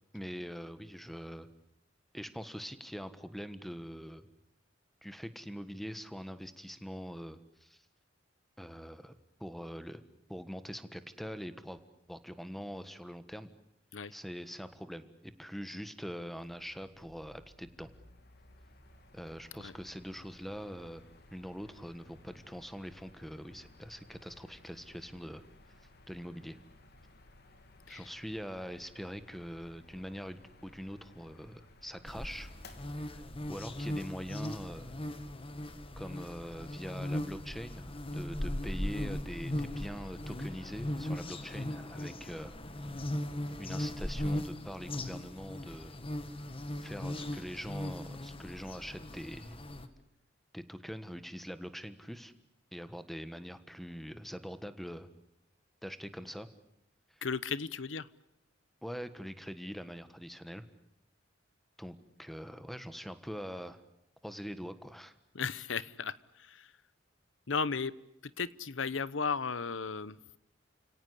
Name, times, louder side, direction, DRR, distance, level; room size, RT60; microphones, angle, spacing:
voice 1, 0.1-1.5 2.1-4.3 5.0-7.8 8.6-9.1 9.4-10.0 10.3-11.8 12.1-13.5 14.1-17.9 19.1-21.1 21.3-25.4 26.1-26.6 27.9-32.5 33.0-34.9 36.0-42.6 43.6-45.9 46.8-49.6 50.5-52.3 52.7-55.1 55.8-56.5 57.1-57.2 58.8-60.6 61.8-63.8 64.2-65.1, equal, ahead, 12 dB, 1.4 m, -43 dB
Mechanical fan, 16.3-36.0, left 2 dB, 60° left, 3.0 m, -59 dB
sound 1, 32.1-49.9, left 1 dB, 30° left, 1.6 m, -38 dB
voice 2, 57.2-58.1 65.3-66.7 67.5-67.9 68.4-70.2, left 5 dB, 85° left, 18 dB, 0.9 m, -35 dB
29.5 x 17.5 x 10.0 m, 0.81 s
head